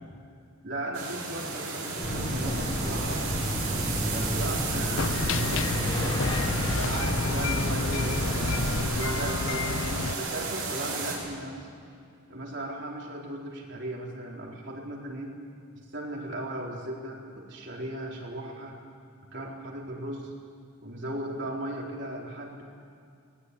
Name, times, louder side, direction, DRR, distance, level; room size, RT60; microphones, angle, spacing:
voice 1, 0.6-3.2 3.7-6.2 6.7-11.7 12.3-15.3 15.9-18.7 19.3-20.3 20.8-22.6, right 1 dB, 55° right, -2 dB, 4.2 m, -37 dB
sound 1, 0.9-11.2, right 4 dB, 80° right, 6.4 m, -33 dB
sound 2, 2.0-8.9, equal, 25° left, 3.5 m, -30 dB
sound 3, 5.0-10.1, left 5 dB, 65° left, 0.5 m, -31 dB
20.0 x 20.0 x 9.8 m, 2.4 s
head